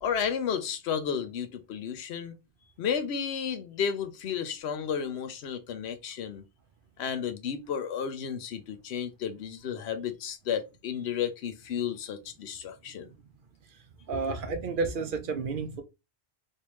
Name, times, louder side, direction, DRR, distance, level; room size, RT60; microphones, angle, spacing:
voice 1, 0.0-2.3 2.8-6.4 7.0-13.1, left 7 dB, 85° left, 0.9 m, -32 dB
voice 2, 14.1-15.8, right 4 dB, 60° right, 0.7 m, -31 dB
3.3 x 2.7 x 3.0 m
omnidirectional pair, 1.1 m